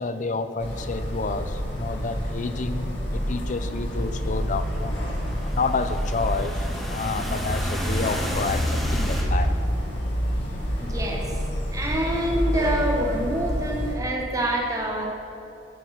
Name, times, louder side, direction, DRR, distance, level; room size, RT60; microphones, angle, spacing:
voice 1, 0.0-4.9 5.4-9.5 10.0-10.5, left 4 dB, 45° left, 10 dB, 0.5 m, -30 dB
sound 1, 0.6-13.9, equal, 75° left, 2.1 m, -28 dB
sound 2, 3.5-9.2, equal, ahead, 1.3 m, -32 dB
voice 2, 10.8-11.4 11.7-15.1, right 1 dB, 20° right, -1 dB, 1.3 m, -26 dB
9.9 x 6.4 x 5.7 m, 2.7 s
head